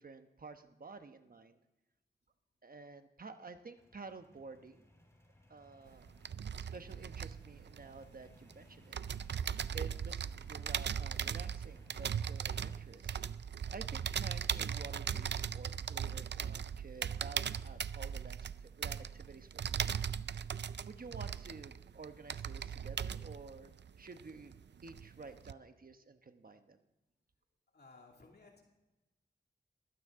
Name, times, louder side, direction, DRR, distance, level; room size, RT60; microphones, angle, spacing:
voice 1, 0.0-1.6 2.6-4.8 5.5-6.1 6.6-9.0 9.7-13.2 13.7-19.9 20.9-23.7 24.0-24.5 24.8-26.8, right 4 dB, 55° right, 8 dB, 1.0 m, -51 dB
sound 1, 3.8-12.8, left 1 dB, 15° left, 4.4 m, -62 dB
sound 2, 5.9-8.5 8.9-24.6 24.9-25.5, right 8 dB, 75° right, 0.5 m, -38 dB
voice 2, 27.7-28.6, left 3 dB, 65° left, 0 dB, 2.6 m, -58 dB
21.5 x 16.0 x 3.7 m, 1.0 s
wide cardioid pair, 95°, 18 cm